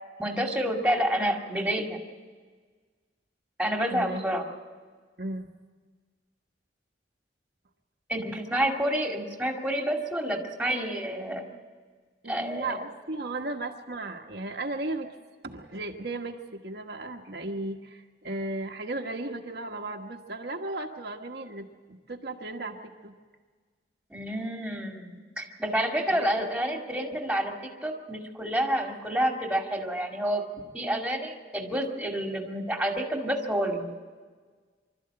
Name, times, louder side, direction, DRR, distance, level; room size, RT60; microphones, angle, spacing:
voice 1, 0.2-2.0 3.6-4.5 8.1-11.4 12.3-12.8 24.1-27.5 27.8-30.4 30.7-33.9, equal, 5° right, 2 dB, 2.3 m, -29 dB
voice 2, 3.9-4.2 5.2-5.5 12.2-15.1 15.4-23.1 26.1-26.3, right 2 dB, 60° right, 1 dB, 1.3 m, -35 dB
25.0 x 13.0 x 8.7 m, 1.5 s
head